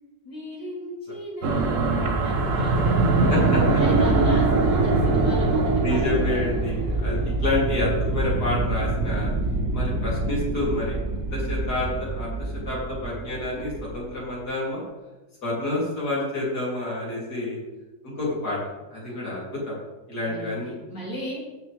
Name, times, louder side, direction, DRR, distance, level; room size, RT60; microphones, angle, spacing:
voice 1, 0.2-3.2 3.7-6.3 18.2-18.4 20.2-21.4, equal, 80° left, -6 dB, 4.5 m, -37 dB
sound 1, 1.4-14.0, right 3 dB, 50° right, 1.3 m, -23 dB
voice 2, 3.3-3.6 5.8-9.3 9.7-10.9 11.3-14.8 15.4-17.6 18.2-18.6 18.9-19.8 20.1-20.7, left 2 dB, 60° left, -5 dB, 3.9 m, -28 dB
15.5 x 6.6 x 3.5 m, 1.1 s
omnidirectional pair, 1.9 m